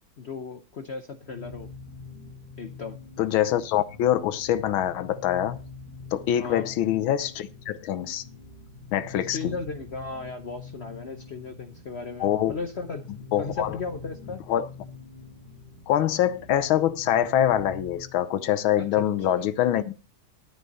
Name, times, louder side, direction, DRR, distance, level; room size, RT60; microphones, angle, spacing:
voice 1, 0.2-1.7 2.6-3.0 6.4-6.7 9.2-13.1 13.4-14.4 18.8-19.5, left 4 dB, 60° left, 0.6 m, -36 dB
sound 1, 1.2-18.2, left 4 dB, 20° left, 3.0 m, -45 dB
voice 2, 3.2-5.6 6.1-8.2 8.9-9.5 12.2-12.5 13.3-13.8 14.5-14.7 15.9-19.9, left 11 dB, 90° left, 1.6 m, -24 dB
11.5 x 9.3 x 4.1 m
omnidirectional pair, 2.2 m